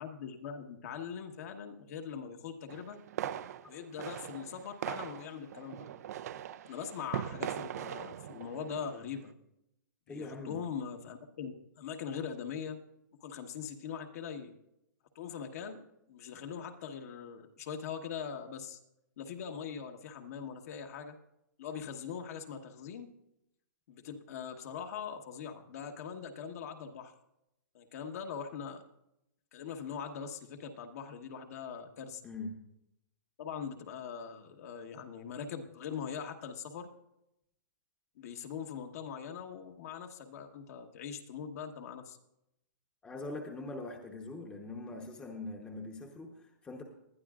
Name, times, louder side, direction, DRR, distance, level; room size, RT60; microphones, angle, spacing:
voice 1, 0.0-3.0 3.7-5.9 6.7-9.3 10.1-12.8 13.2-14.5 15.1-15.8 16.1-18.8 19.2-21.2 21.6-23.1 23.9-27.1 27.7-28.8 29.5-32.2 33.4-36.9 38.2-42.2, left 7 dB, 50° left, 5 dB, 1.3 m, -42 dB
sound 1, 2.7-9.1, right 10 dB, 55° right, 0.5 m, -41 dB
voice 2, 10.1-10.6 32.2-32.6 43.0-46.8, left 2 dB, 10° left, 2 dB, 1.0 m, -42 dB
19.5 x 11.5 x 2.4 m, 0.82 s
hypercardioid pair, 150°, 10 cm